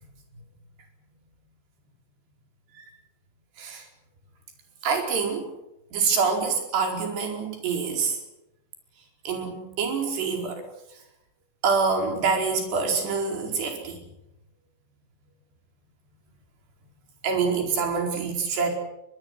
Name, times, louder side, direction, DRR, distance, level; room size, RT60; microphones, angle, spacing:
voice 1, 4.8-5.5 5.9-8.2 9.2-10.7 11.6-14.0 17.2-18.7, right 5 dB, 60° right, 3 dB, 6.7 m, -26 dB
22.5 x 22.5 x 8.2 m, 0.86 s
omnidirectional pair, 5.5 m